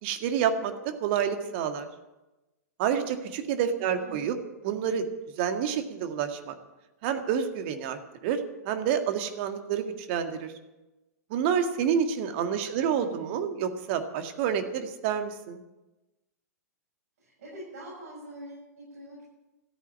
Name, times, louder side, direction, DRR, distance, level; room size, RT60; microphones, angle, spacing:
voice 1, 0.0-0.7 1.0-1.9 2.8-4.4 4.6-5.1 5.4-6.5 7.0-10.5 11.3-15.6, right 8 dB, 45° right, 7 dB, 1.9 m, -28 dB
voice 2, 4.0-4.4 13.0-13.4 17.2-19.2, right 1 dB, 60° right, -7 dB, 7.6 m, -44 dB
14.5 x 9.3 x 9.6 m, 1.0 s
figure-of-eight pair, 100°, 9 cm